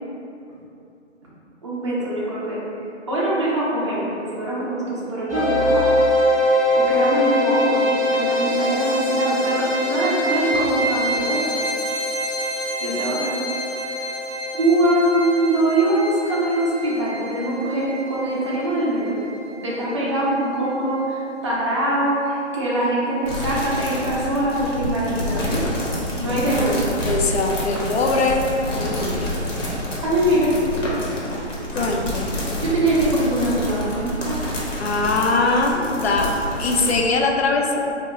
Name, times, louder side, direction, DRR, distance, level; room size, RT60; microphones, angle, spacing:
voice 1, 1.6-2.6 3.1-5.9 6.7-11.5 12.8-13.3 14.5-19.2 19.6-25.6 26.2-26.9 30.0-30.5 32.6-34.4, right 1 dB, 25° right, -8 dB, 0.4 m, -23 dB
sound 1, 5.3-20.3, equal, 30° left, 0.8 m, -24 dB
sound 2, 23.2-37.0, left 1 dB, 85° left, 1.1 m, -28 dB
voice 2, 27.1-28.4 28.8-29.4 31.7-32.3 34.8-36.3 36.6-37.8, left 3 dB, 60° left, 1 dB, 0.4 m, -21 dB
2.8 x 2.2 x 3.5 m, 2.7 s
hypercardioid pair, 155°, 36 cm